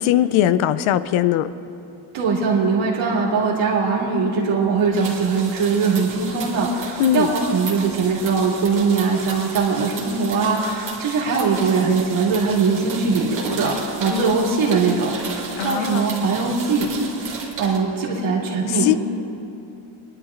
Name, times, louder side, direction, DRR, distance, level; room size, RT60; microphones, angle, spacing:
voice 1, 0.0-1.5 7.0-7.3 14.1-14.3 15.6-16.1 18.8-18.9, left 12 dB, 85° left, 14 dB, 0.6 m, -19 dB
voice 2, 2.1-16.9 17.6-18.9, right 4 dB, 70° right, -3 dB, 2.7 m, -21 dB
sound 1, 4.8-17.8, right 4 dB, 40° right, 2.2 m, -34 dB
28.5 x 11.0 x 2.5 m, 2.7 s
cardioid pair, 160°, 48 cm